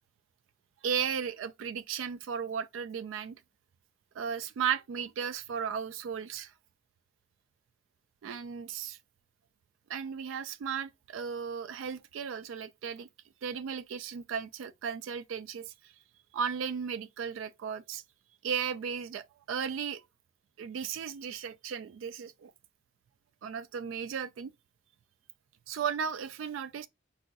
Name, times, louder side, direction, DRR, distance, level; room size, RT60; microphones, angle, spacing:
voice 1, 0.8-3.4 4.2-6.5 8.2-9.0 9.9-13.1 13.4-15.7 16.3-18.0 18.4-20.0 20.6-22.5 23.4-24.5 25.7-26.9, right 7 dB, 85° right, 0.3 m, -35 dB
3.8 x 2.3 x 2.6 m
head